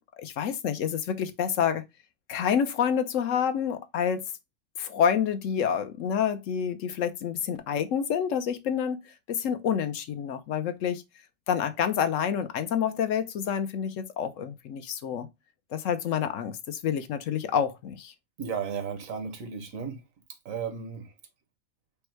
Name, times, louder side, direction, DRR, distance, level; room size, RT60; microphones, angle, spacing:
voice 1, 0.2-1.8 2.3-4.2 4.8-9.0 9.3-11.0 11.5-15.3 15.7-18.1, left 8 dB, 75° left, 1.1 m, -28 dB
voice 2, 18.4-20.0 20.4-21.1, right 6 dB, 85° right, 1.4 m, -34 dB
5.3 x 2.1 x 4.5 m
omnidirectional pair, 1.3 m